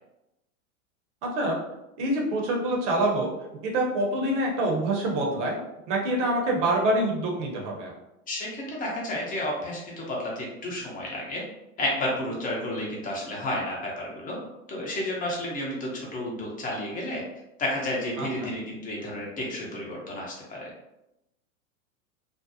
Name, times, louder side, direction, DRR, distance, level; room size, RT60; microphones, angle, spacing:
voice 1, 1.2-1.5 2.0-3.3 3.6-5.6 5.9-7.9 18.2-18.5, right 1 dB, 55° right, -1 dB, 0.9 m, -26 dB
voice 2, 8.3-11.4 11.8-14.4 14.7-17.2 17.6-20.7, left 1 dB, 20° left, -3 dB, 0.8 m, -31 dB
2.6 x 2.0 x 2.7 m, 0.90 s
hypercardioid pair, 105°, 43 cm